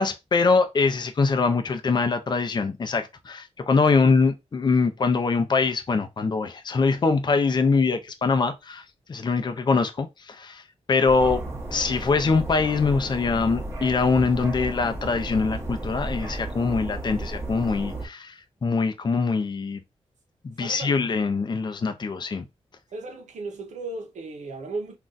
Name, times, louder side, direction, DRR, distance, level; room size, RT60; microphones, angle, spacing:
voice 1, 0.0-10.6 10.9-11.4 11.7-19.8 20.4-22.4, left 4 dB, 40° left, 0.5 m, -23 dB
sound 1, 11.1-18.0, right 2 dB, 20° right, 0.9 m, -33 dB
voice 2, 20.6-21.0 22.9-24.9, right 3 dB, 85° right, 0.7 m, -35 dB
2.5 x 2.3 x 3.8 m
wide cardioid pair, 95°, 12 cm